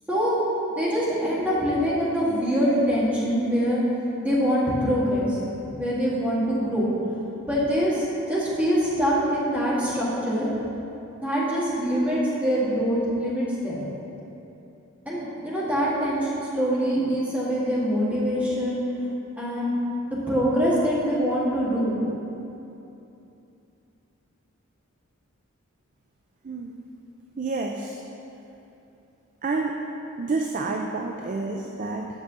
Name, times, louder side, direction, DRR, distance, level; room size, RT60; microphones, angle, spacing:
voice 1, 0.7-3.8 4.2-6.9 7.5-10.5 11.2-13.8 15.1-18.8 19.4-19.8 20.1-22.0, equal, 5° right, -8 dB, 1.8 m, -24 dB
voice 2, 26.4-26.8 27.4-28.0 29.4-29.8 30.2-32.1, right 3 dB, 35° right, 2 dB, 0.4 m, -29 dB
8.1 x 4.8 x 6.7 m, 2.9 s
head